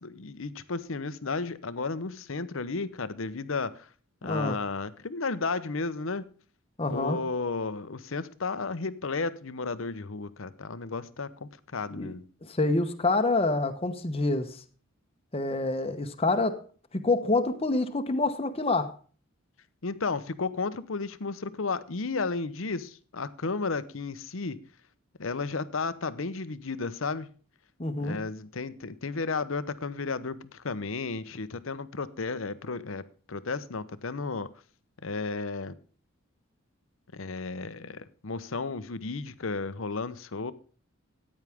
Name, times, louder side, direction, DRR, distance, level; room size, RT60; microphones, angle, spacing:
voice 1, 0.0-3.9 4.2-6.3 6.8-12.2 19.8-24.6 25.2-27.3 28.0-34.5 35.0-35.7 37.1-40.5, left 4 dB, 70° left, 0.8 m, -33 dB
voice 2, 4.2-4.6 6.8-7.2 11.9-12.1 12.5-14.6 15.3-16.6 16.9-18.9 27.8-28.2, left 2 dB, 25° left, 1.0 m, -27 dB
14.0 x 9.8 x 3.5 m
head